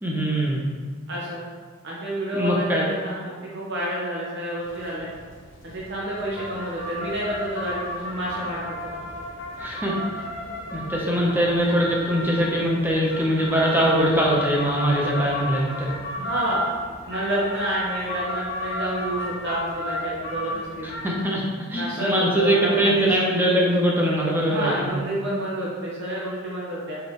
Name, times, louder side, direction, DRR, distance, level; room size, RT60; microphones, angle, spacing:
voice 1, 0.0-0.7 2.3-2.8 9.6-9.9 10.7-15.9 21.0-21.4 21.7-24.9, right 1 dB, 10° right, -3 dB, 0.9 m, -22 dB
voice 2, 1.1-1.4 1.8-5.1 5.6-8.9 16.2-16.7 17.1-21.0 21.7-23.1 24.5-27.0, equal, 60° right, -5 dB, 1.0 m, -29 dB
sound 1, 4.6-21.1, left 1 dB, 65° left, 1.2 m, -33 dB
6.1 x 5.1 x 3.1 m, 1.5 s
head